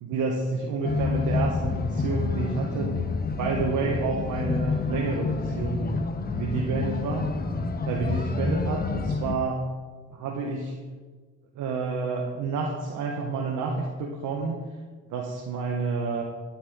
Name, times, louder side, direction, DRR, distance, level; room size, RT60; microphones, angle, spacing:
voice 1, 0.0-3.0 3.4-5.9 6.3-7.3 7.8-9.7 10.1-10.7 11.5-14.6 15.1-16.2, right 4 dB, 80° right, 0 dB, 1.5 m, -29 dB
sound 1, 0.8-9.3, left 4 dB, 30° left, 1.0 m, -28 dB
12.5 x 9.9 x 3.9 m, 1.4 s
cardioid pair, 90°, 30 cm